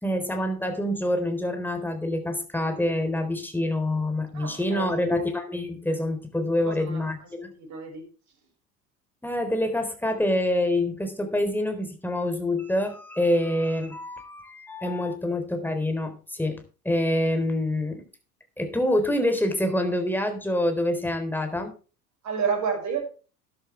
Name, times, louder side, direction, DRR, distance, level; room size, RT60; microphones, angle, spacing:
voice 1, 0.0-7.5 9.2-18.0 18.6-21.7, left 1 dB, 5° left, 6 dB, 3.9 m, -26 dB
voice 2, 4.3-5.3 6.6-7.3 7.6-8.1 22.2-23.0, right 6 dB, 40° right, 3 dB, 6.3 m, -30 dB
14.0 x 11.0 x 3.4 m, 0.35 s
figure-of-eight pair, 75°, 43 cm